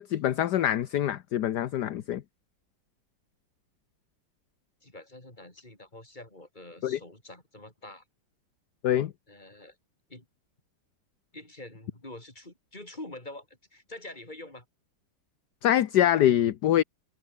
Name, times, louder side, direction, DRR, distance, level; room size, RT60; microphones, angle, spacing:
voice 1, 0.0-2.2 6.8-7.0 8.8-9.1 15.6-16.8, left 11 dB, 65° left, 1.4 m, -24 dB
voice 2, 4.8-8.0 9.3-9.8 10.1-10.3 11.3-14.7, left 1 dB, 20° left, 5.0 m, -46 dB
omnidirectional pair, 2.1 m